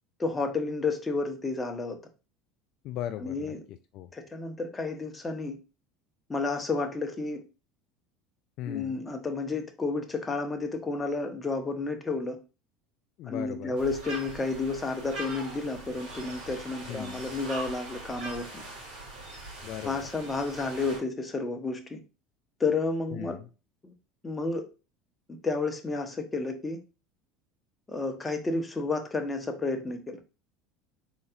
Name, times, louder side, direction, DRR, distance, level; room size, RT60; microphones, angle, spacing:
voice 1, 0.2-2.0 3.2-3.6 4.1-5.6 6.3-7.4 8.7-12.4 13.3-18.6 19.8-22.0 22.6-23.4 23.8-23.9 24.2-24.6 25.4-26.8 27.9-30.2, left 3 dB, 20° left, 1.0 m, -31 dB
voice 2, 2.8-4.1 8.6-9.0 13.2-13.8 16.9-17.3 19.6-20.1 23.1-23.5, left 12 dB, 60° left, 0.3 m, -38 dB
sound 1, 13.7-21.0, right 2 dB, 50° right, 2.5 m, -41 dB
4.0 x 3.9 x 2.4 m
hypercardioid pair, 80°, 0 cm